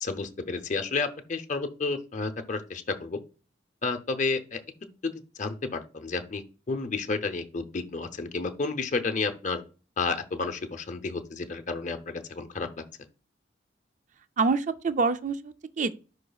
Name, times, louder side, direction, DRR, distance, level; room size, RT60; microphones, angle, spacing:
voice 1, 0.0-3.2 3.8-4.6 5.0-9.6 10.0-12.7, left 4 dB, 40° left, 0.6 m, -31 dB
voice 2, 14.4-15.9, right 4 dB, 40° right, 0.4 m, -26 dB
10.5 x 4.0 x 2.3 m
head